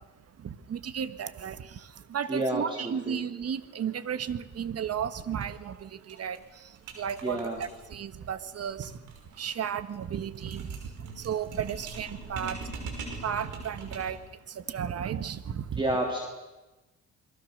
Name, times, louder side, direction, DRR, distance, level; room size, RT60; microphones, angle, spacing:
voice 1, 0.7-1.6 2.1-5.9 6.2-6.4 7.0-8.9 9.4-10.6 11.2-12.6 13.2-14.2 14.7-15.8, right 8 dB, 55° right, 12 dB, 1.5 m, -33 dB
voice 2, 2.3-3.2 7.2-7.6 15.8-16.2, right 1 dB, 15° right, 1 dB, 3.5 m, -30 dB
sound 1, 5.3-5.4 5.7-5.8 6.1-14.3, right 3 dB, 80° right, 6.0 m, -43 dB
28.0 x 22.0 x 6.7 m, 1.1 s
cardioid pair, 90°, 30 cm